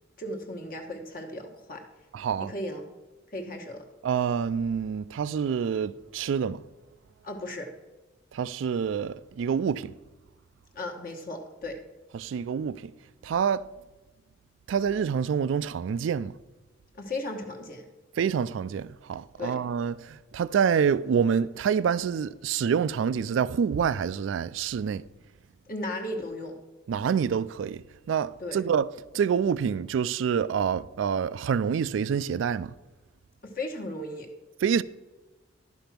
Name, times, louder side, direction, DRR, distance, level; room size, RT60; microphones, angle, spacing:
voice 1, 0.2-1.8 2.4-2.8 3.3-3.9 7.2-7.7 10.7-11.8 16.9-17.8 19.4-19.6 25.7-26.6 28.4-28.6 33.4-34.3, left 1 dB, 45° left, 1.2 m, -36 dB
voice 2, 2.1-2.5 4.0-6.6 8.3-9.9 12.1-12.9 13.2-13.6 14.7-16.3 18.2-25.0 26.9-28.9 29.1-32.7 34.6-34.8, right 7 dB, 75° right, 0.3 m, -27 dB
11.0 x 5.2 x 5.8 m
head